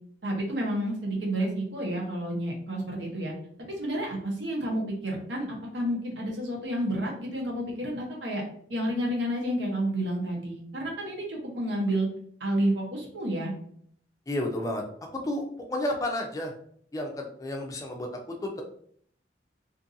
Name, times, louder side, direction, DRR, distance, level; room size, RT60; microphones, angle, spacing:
voice 1, 0.2-3.3 3.8-5.4 5.7-8.4 8.7-12.1 12.4-13.5, right 1 dB, 85° right, -1 dB, 0.9 m, -30 dB
voice 2, 14.3-14.8 15.2-15.4 15.7-16.5 16.9-18.1 18.4-18.6, left 1 dB, 20° left, 2 dB, 0.3 m, -31 dB
2.6 x 2.5 x 2.6 m, 0.62 s
head